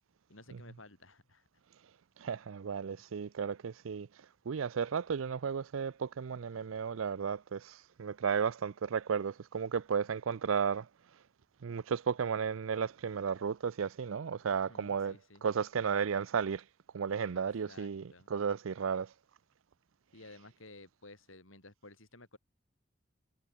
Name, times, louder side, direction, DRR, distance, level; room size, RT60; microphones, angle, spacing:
voice 1, 0.3-1.4 14.5-15.5 17.3-18.3 20.1-22.4, left 2 dB, 80° left, 7.7 m, -55 dB
voice 2, 2.2-4.1 4.5-10.9 11.6-16.6 16.9-19.1, right 6 dB, 85° right, 0.5 m, -34 dB
head